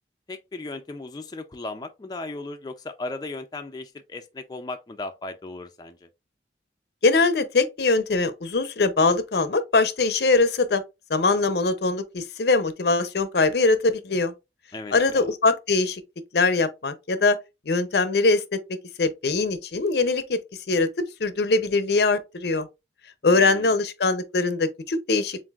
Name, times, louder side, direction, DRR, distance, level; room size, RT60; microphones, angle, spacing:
voice 1, 0.3-6.1 14.7-15.3 23.2-23.7, left 2 dB, 20° left, 0.3 m, -36 dB
voice 2, 7.0-10.8 11.1-14.3 14.9-16.0 16.3-17.4 17.7-18.6 19.0-20.4 20.7-20.9 21.2-22.7 23.2-25.4, left 3 dB, 65° left, 0.6 m, -22 dB
7.2 x 2.5 x 2.3 m
head